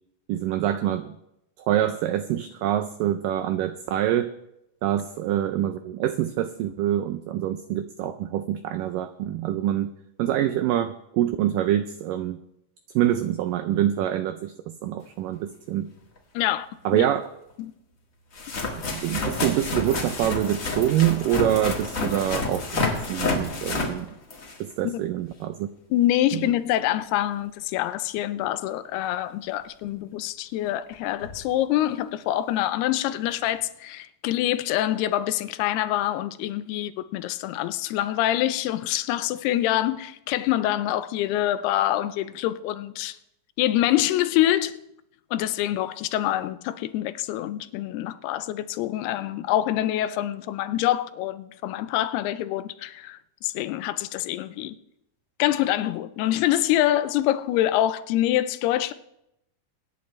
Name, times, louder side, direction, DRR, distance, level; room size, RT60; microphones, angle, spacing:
voice 1, 0.3-1.1 1.7-4.3 4.8-9.9 10.2-12.4 13.0-15.9 16.9-17.2 18.9-24.1 24.6-25.7 26.3-26.4, right 12 dB, 85° right, 1.9 m, -25 dB
sound 1, 16.2-16.3 17.5-17.6 18.3-24.7 29.8-29.9 30.9-31.0 31.2-31.4 33.3-33.4, left 3 dB, 40° left, 1.1 m, -29 dB
voice 2, 16.4-17.1 17.6-17.7 24.8-25.0 25.9-43.2 43.6-44.8 45.3-54.7 55.4-58.9, left 13 dB, 85° left, 2.6 m, -25 dB
23.5 x 10.0 x 3.2 m
omnidirectional pair, 4.6 m